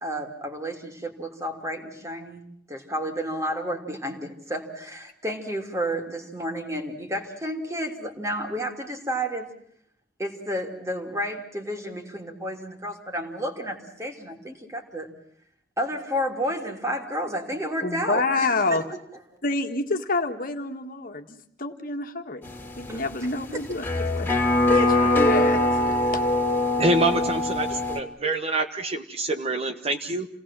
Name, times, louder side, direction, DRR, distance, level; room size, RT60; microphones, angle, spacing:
voice 1, 0.0-9.5 10.2-15.1 15.8-18.8 22.9-23.0 23.5-23.6, equal, 20° right, 4 dB, 3.1 m, -31 dB
voice 2, 17.8-18.8 19.4-23.8 24.1-24.3 24.7-26.2, left 3 dB, 55° left, 5 dB, 1.8 m, -28 dB
sound 1, 22.4-28.0, left 2 dB, 15° left, 2.9 m, -23 dB
voice 3, 26.8-30.3, right 2 dB, 35° right, 7 dB, 1.3 m, -26 dB
28.5 x 18.5 x 7.6 m, 0.69 s
head